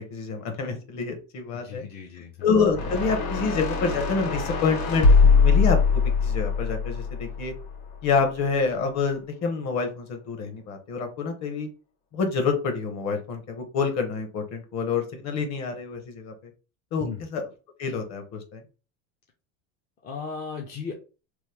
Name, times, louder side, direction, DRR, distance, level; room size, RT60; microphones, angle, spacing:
voice 1, 0.1-1.8 2.4-7.5 8.0-11.7 12.1-16.3 16.9-17.4 17.8-18.6, left 5 dB, 40° left, 5 dB, 1.0 m, -27 dB
voice 2, 1.5-2.5 17.0-17.2 20.0-20.9, left 5 dB, 25° left, 0 dB, 0.5 m, -36 dB
sound 1, 2.7-8.0, left 5 dB, 60° left, 1.6 m, -22 dB
3.0 x 2.1 x 3.4 m, 0.33 s
supercardioid pair, 125°, 40 cm